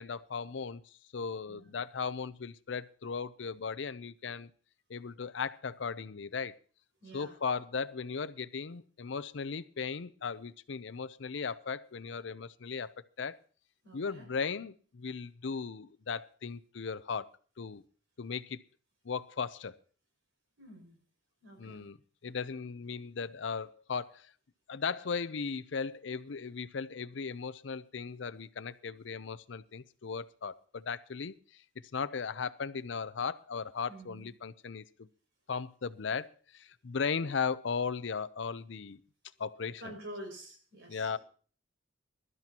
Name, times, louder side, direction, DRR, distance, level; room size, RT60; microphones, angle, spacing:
voice 1, 0.0-4.5 4.9-6.6 7.1-12.9 13.2-13.4 13.9-17.3 17.6-17.8 18.2-18.6 19.0-19.8 21.6-22.0 22.2-24.3 24.7-31.6 31.9-35.1 35.5-39.0 39.4-39.9 40.9-41.2, left 5 dB, 70° left, 15 dB, 0.6 m, -37 dB
voice 2, 7.0-7.4 13.8-14.3 20.6-21.0 21.4-21.8 33.9-34.3 39.8-41.1, right 1 dB, 70° right, 2 dB, 6.0 m, -48 dB
22.5 x 12.5 x 2.9 m, 0.42 s
head